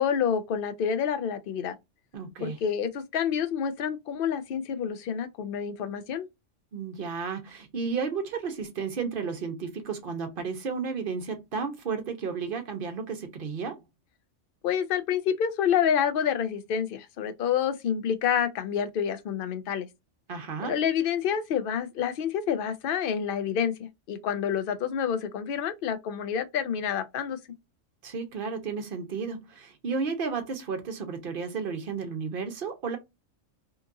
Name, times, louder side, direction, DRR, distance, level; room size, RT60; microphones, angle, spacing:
voice 1, 0.0-1.7 2.4-6.3 14.6-19.9 20.6-27.4, left 8 dB, 60° left, 0.6 m, -28 dB
voice 2, 2.1-2.6 6.7-13.8 20.3-20.8 28.0-33.0, right 5 dB, 50° right, 0.8 m, -33 dB
2.9 x 2.4 x 2.4 m
omnidirectional pair, 1.3 m